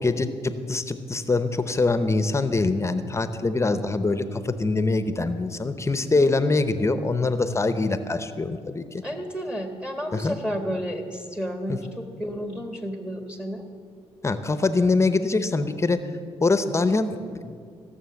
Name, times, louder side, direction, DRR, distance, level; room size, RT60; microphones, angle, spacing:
voice 1, 0.0-9.0 10.1-10.4 11.7-11.8 14.2-16.1 16.4-17.6, left 3 dB, 25° left, 11 dB, 0.8 m, -24 dB
voice 2, 9.0-13.7, equal, 10° right, 5 dB, 1.5 m, -32 dB
16.0 x 7.0 x 7.0 m, 2.3 s
cardioid pair, 70°, 12 cm